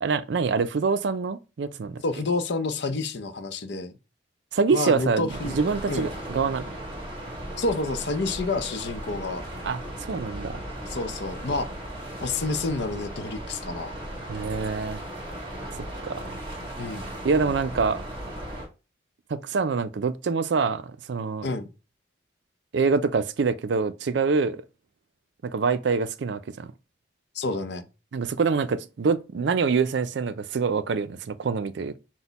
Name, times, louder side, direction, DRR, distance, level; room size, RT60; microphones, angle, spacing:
voice 1, 0.0-2.0 4.5-6.7 9.6-9.8 10.1-10.6 14.3-15.0 16.0-16.2 17.2-18.0 19.3-21.5 22.7-24.6 25.4-26.7 28.1-32.0, right 4 dB, 70° right, 0.4 m, -25 dB
voice 2, 2.0-3.9 4.7-5.6 5.9-6.1 7.6-9.4 10.9-11.7 12.2-14.0 16.8-17.1 21.4-21.7 27.3-27.9, left 3 dB, 65° left, 0.6 m, -29 dB
sound 1, 5.3-18.7, right 1 dB, 25° right, 1.5 m, -37 dB
6.1 x 2.1 x 4.0 m
head